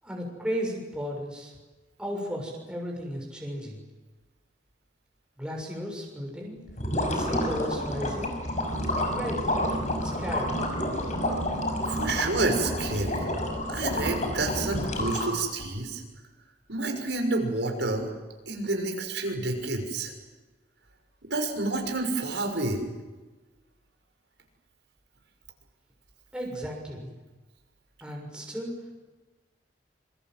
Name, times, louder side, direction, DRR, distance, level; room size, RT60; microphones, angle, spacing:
voice 1, 0.0-1.5 2.0-3.8 5.4-6.6 7.1-8.3 8.9-9.6 10.0-10.6 26.3-27.1 28.0-29.0, equal, 5° right, 0 dB, 6.7 m, -35 dB
sound 1, 6.7-15.6, left 1 dB, 40° left, 6.1 m, -29 dB
voice 2, 11.9-13.3 13.7-16.0 16.7-18.1 18.5-20.1 21.2-22.8, right 2 dB, 80° right, 3 dB, 6.3 m, -29 dB
27.0 x 25.5 x 7.8 m, 1.2 s
head